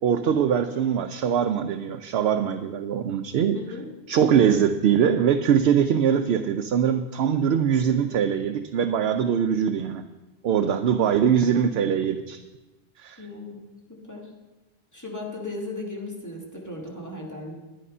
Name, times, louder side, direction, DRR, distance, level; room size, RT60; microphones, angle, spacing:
voice 1, 0.0-3.6 4.1-10.0 10.4-12.4 13.0-13.2, right 8 dB, 80° right, 6 dB, 0.8 m, -22 dB
voice 2, 3.5-3.9 13.2-13.6 13.9-14.3 14.9-17.5, left 2 dB, 15° left, -2 dB, 2.1 m, -36 dB
11.0 x 10.0 x 5.5 m, 1.1 s
omnidirectional pair, 1.0 m